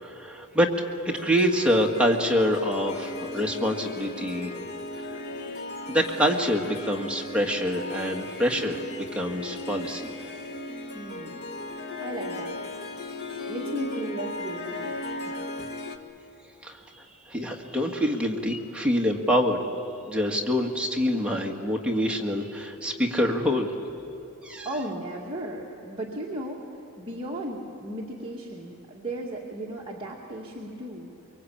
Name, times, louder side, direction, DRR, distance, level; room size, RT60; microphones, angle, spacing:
voice 1, 0.0-4.5 5.1-5.2 5.9-10.1 16.6-19.6 20.1-23.7 24.4-24.7, equal, 5° right, 0 dB, 1.8 m, -26 dB
Harp, 1.1-16.0, left 2 dB, 45° left, 1.5 m, -37 dB
voice 2, 10.9-11.4 11.8-12.8 13.4-14.9 15.3-15.5 24.6-31.1, right 1 dB, 25° right, -4 dB, 2.3 m, -36 dB
24.5 x 24.0 x 8.7 m, 3.0 s
head